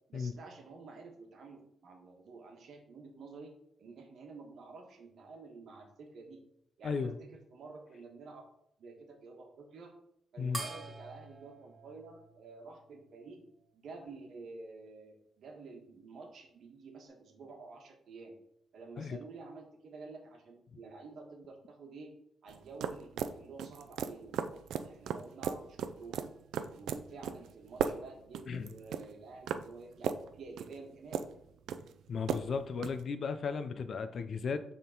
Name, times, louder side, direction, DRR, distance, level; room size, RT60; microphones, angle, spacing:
voice 1, 0.1-3.5 3.8-6.5 6.8-8.4 8.8-9.9 10.3-13.5 13.7-18.4 18.7-22.1 22.4-26.2 26.5-31.2, right 3 dB, 60° right, 2 dB, 1.3 m, -50 dB
voice 2, 6.8-7.2 10.4-10.6 19.0-19.2 28.5-28.7 32.1-34.6, left 5 dB, 50° left, 10 dB, 0.5 m, -35 dB
sound 1, 10.5-13.3, right 2 dB, 15° right, 0.9 m, -46 dB
sound 2, 22.5-33.0, right 7 dB, 90° right, 0.4 m, -38 dB
6.7 x 3.7 x 3.9 m, 0.71 s
cardioid pair, 135°, 0 cm